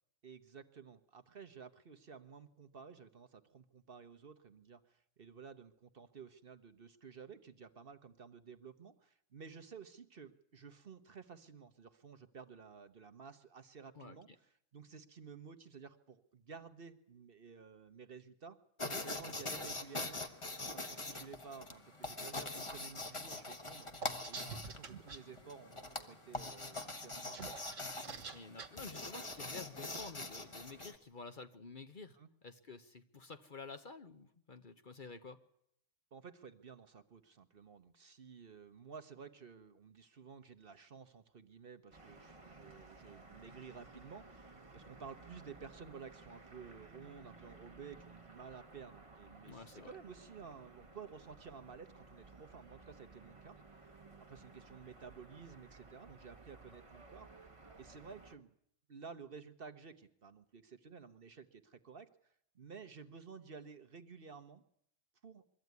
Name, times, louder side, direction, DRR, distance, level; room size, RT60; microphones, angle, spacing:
voice 1, 0.2-20.5 20.7-27.5 32.2-32.3 36.1-57.4 57.8-58.5 58.9-64.6 65.2-65.4, right 6 dB, 50° right, 9 dB, 1.1 m, -53 dB
sound 1, 18.8-31.0, left 2 dB, 25° left, 1.3 m, -44 dB
sound 2, 24.0-25.2 27.1-28.7, right 5 dB, 75° right, 1.7 m, -46 dB
voice 2, 28.3-35.4 49.5-49.9, left 4 dB, 45° left, 8 dB, 1.0 m, -51 dB
sound 3, 41.9-58.4, right 3 dB, 25° right, 1.2 m, -57 dB
22.5 x 14.0 x 9.4 m, 0.74 s
omnidirectional pair, 1.3 m